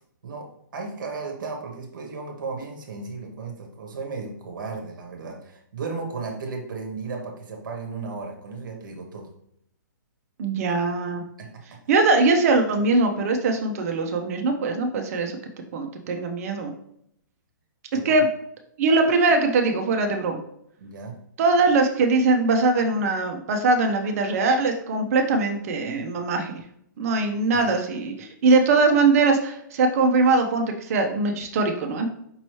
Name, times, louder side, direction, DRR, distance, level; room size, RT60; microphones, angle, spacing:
voice 1, 0.2-9.3 11.4-11.8 17.9-18.1 20.8-21.2 27.5-27.7, right 4 dB, 70° right, 1 dB, 1.0 m, -35 dB
voice 2, 10.4-11.2 11.9-15.3 15.7-16.7 18.0-18.3 18.8-20.4 21.4-26.5 27.0-32.1, right 3 dB, 45° right, 4 dB, 0.6 m, -21 dB
5.4 x 2.9 x 3.0 m, 0.72 s
hypercardioid pair, 150°, 11 cm